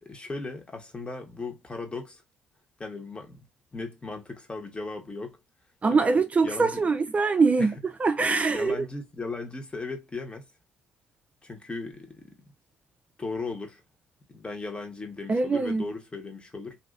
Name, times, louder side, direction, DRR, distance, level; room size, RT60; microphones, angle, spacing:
voice 1, 0.0-2.2 2.8-3.4 3.7-5.4 5.9-6.1 6.4-6.8 7.6-7.7 8.5-10.5 11.4-12.4 13.2-13.8 14.3-16.8, left 3 dB, 25° left, 1.3 m, -37 dB
voice 2, 5.8-8.9 15.3-15.9, right 4 dB, 30° right, 0.4 m, -23 dB
3.0 x 2.7 x 2.5 m
hypercardioid pair, 55°, 4 cm